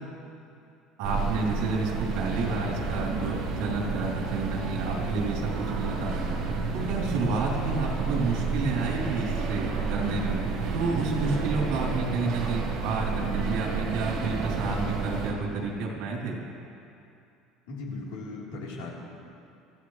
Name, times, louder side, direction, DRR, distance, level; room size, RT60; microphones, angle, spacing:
sound 1, 1.0-15.3, right 4 dB, 40° right, 2.1 m, -30 dB
voice 1, 1.0-6.1 6.7-10.4 10.7-16.5, right 3 dB, 70° right, -2 dB, 3.4 m, -30 dB
voice 2, 17.7-18.9, left 3 dB, 90° left, -4 dB, 3.8 m, -37 dB
24.5 x 14.0 x 3.3 m, 2.6 s
cardioid pair, 180°, 0 cm